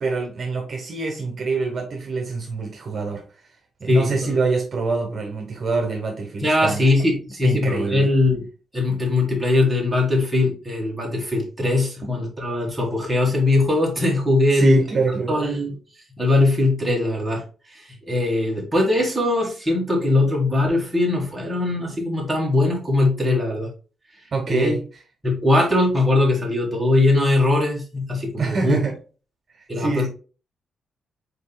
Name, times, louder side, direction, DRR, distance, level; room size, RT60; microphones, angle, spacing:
voice 1, 0.0-3.2 3.8-6.9 7.4-8.1 14.5-15.5 24.3-24.8 28.4-28.9 29.6-30.1, right 4 dB, 40° right, 1 dB, 1.0 m, -25 dB
voice 2, 3.9-4.3 6.4-8.4 8.7-14.8 15.3-15.7 16.2-17.4 17.7-23.7 24.5-24.7 25.2-28.8 29.7-30.1, left 2 dB, 5° right, -3 dB, 1.6 m, -20 dB
5.2 x 4.1 x 2.2 m, 0.36 s
wide cardioid pair, 145°, 0 cm